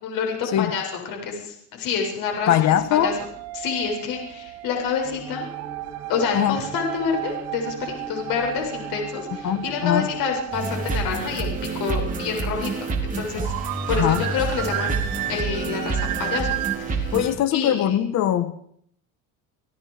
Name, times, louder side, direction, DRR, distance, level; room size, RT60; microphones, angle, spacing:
voice 1, 0.0-3.1 3.5-5.5 6.1-13.5 13.9-15.0 15.3-16.5 16.8-17.2 17.5-17.7, left 6 dB, 65° left, 7.4 m, -28 dB
voice 2, 2.5-3.1 6.3-6.6 9.4-10.1 14.0-14.2 17.1-18.5, left 11 dB, 45° left, 1.5 m, -21 dB
sound 1, 2.8-16.8, right 14 dB, 70° right, 1.9 m, -34 dB
sound 2, 5.0-10.4, right 3 dB, 5° right, 6.4 m, -41 dB
sound 3, 10.5-17.3, right 4 dB, 20° right, 4.4 m, -28 dB
29.0 x 17.5 x 5.1 m
cardioid pair, 130°, 36 cm